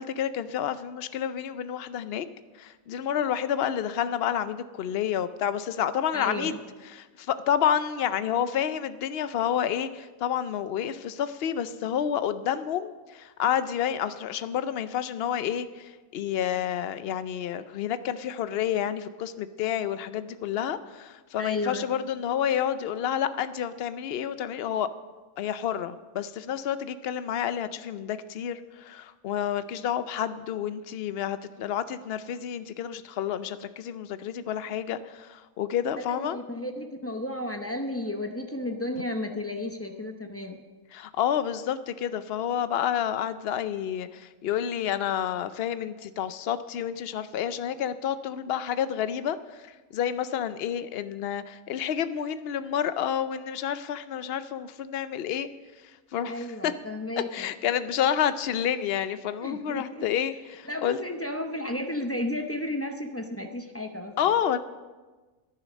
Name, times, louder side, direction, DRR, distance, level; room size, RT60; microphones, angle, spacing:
voice 1, 0.0-2.3 2.6-6.6 6.9-24.9 25.4-36.4 40.9-49.7 49.9-55.5 56.1-56.7 57.2-61.0 64.2-64.6, left 9 dB, 60° left, 13 dB, 0.6 m, -29 dB
voice 2, 6.1-6.6 21.4-21.9 36.0-40.6 56.2-57.5 59.4-60.1 60.6-64.2, left 1 dB, 15° left, 4 dB, 0.5 m, -33 dB
11.0 x 9.8 x 6.2 m, 1.3 s
omnidirectional pair, 1.5 m